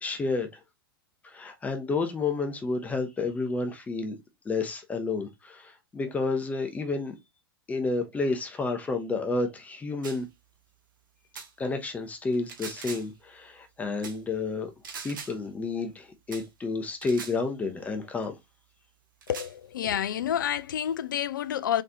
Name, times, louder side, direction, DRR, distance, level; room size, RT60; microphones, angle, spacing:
voice 1, 0.0-0.6 1.2-4.2 4.4-7.2 7.7-10.3 11.6-14.7 15.0-18.3, left 3 dB, 10° left, 0.8 m, -30 dB
sound 1, 10.0-10.3 11.4-11.5 12.3-13.2 14.0-14.2 14.8-15.4 16.3-16.5 17.0-17.4 18.2-18.3 19.2-19.5, right 5 dB, 60° right, 1.0 m, -41 dB
voice 2, 19.3-21.8, left 10 dB, 55° left, 0.4 m, -29 dB
4.0 x 3.2 x 2.6 m
figure-of-eight pair, 100°, 13 cm